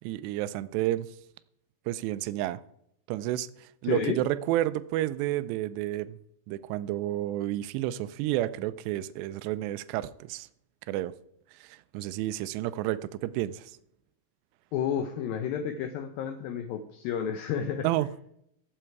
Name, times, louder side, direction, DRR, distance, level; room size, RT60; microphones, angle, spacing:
voice 1, 0.0-1.1 1.9-2.6 3.1-6.2 6.5-10.5 10.9-11.1 11.5-13.7 17.8-18.1, right 14 dB, 85° right, 15 dB, 2.7 m, -30 dB
voice 2, 3.8-4.2 14.7-17.9, left 8 dB, 80° left, 8 dB, 2.2 m, -31 dB
16.0 x 7.9 x 4.7 m, 0.76 s
omnidirectional pair, 4.9 m